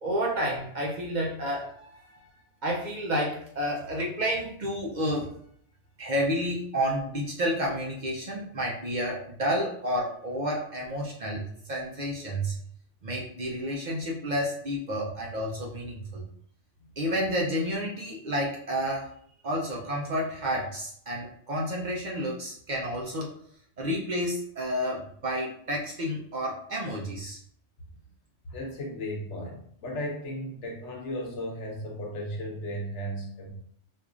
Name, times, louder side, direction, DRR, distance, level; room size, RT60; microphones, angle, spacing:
voice 1, 0.0-2.2 2.6-5.3 6.0-12.6 13.0-16.3 17.0-19.1 19.4-23.4 23.8-27.4, equal, 50° right, -2 dB, 0.6 m, -30 dB
voice 2, 28.5-33.5, equal, 85° left, 0 dB, 1.1 m, -35 dB
4.5 x 2.4 x 2.4 m, 0.64 s
omnidirectional pair, 1.2 m